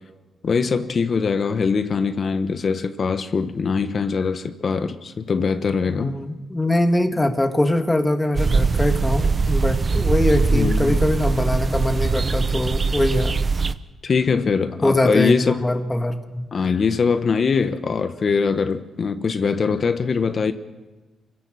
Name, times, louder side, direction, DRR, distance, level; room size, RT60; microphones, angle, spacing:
voice 1, 0.4-6.2 10.4-11.0 14.0-15.7 16.5-20.5, left 5 dB, 45° left, 1.2 m, -22 dB
voice 2, 5.9-13.4 14.8-15.4 15.6-16.5, left 1 dB, 15° left, 1.9 m, -22 dB
sound 1, 8.4-13.7, right 4 dB, 35° right, 0.9 m, -21 dB
28.0 x 17.0 x 6.4 m
cardioid pair, 95°, 0 cm